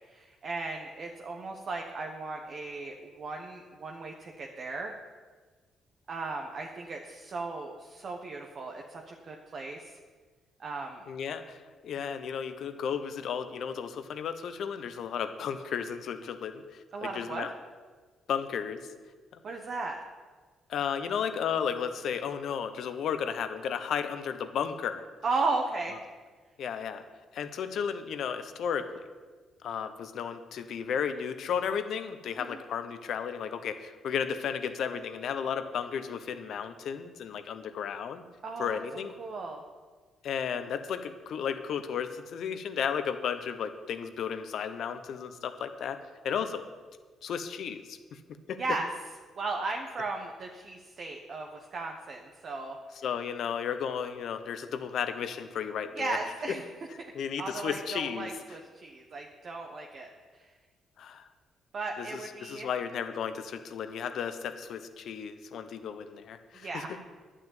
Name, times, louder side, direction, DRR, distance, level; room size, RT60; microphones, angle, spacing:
voice 1, 0.1-4.9 6.1-9.8 10.6-11.0 16.9-17.5 19.4-20.0 25.2-26.0 32.5-32.6 38.4-39.6 48.6-48.9 49.4-52.8 55.9-56.6 57.0-57.1 57.4-60.4 61.7-62.7 66.5-67.0, right 3 dB, 50° right, 1 dB, 1.3 m, -36 dB
voice 2, 11.1-17.5 18.3-18.9 20.7-25.0 26.6-27.0 27.3-29.1 29.6-38.2 38.6-39.1 40.2-46.0 46.2-46.6 47.2-48.2 48.5-48.6 53.0-56.2 57.1-58.3 61.0-61.2 62.0-66.8, left 7 dB, 70° left, 9 dB, 1.0 m, -34 dB
11.5 x 6.3 x 9.1 m, 1.4 s
cardioid pair, 90°, 0 cm